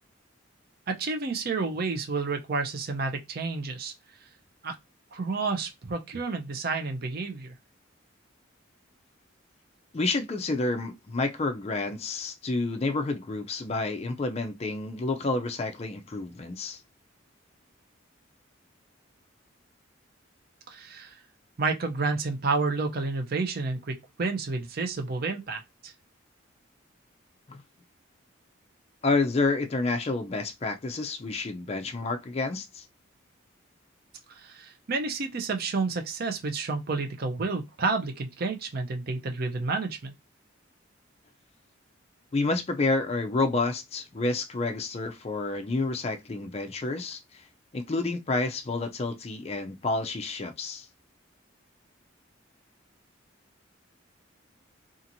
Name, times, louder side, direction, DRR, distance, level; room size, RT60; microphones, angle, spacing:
voice 1, 0.9-3.9 4.6-4.7 5.1-7.5 20.7-21.1 21.6-25.9 34.4-40.1, right 4 dB, 50° right, 0.5 m, -30 dB
voice 2, 9.9-16.8 27.5-27.6 29.0-32.9 42.3-47.4 47.7-50.9, left 3 dB, 30° left, 0.4 m, -29 dB
2.8 x 2.4 x 2.6 m
head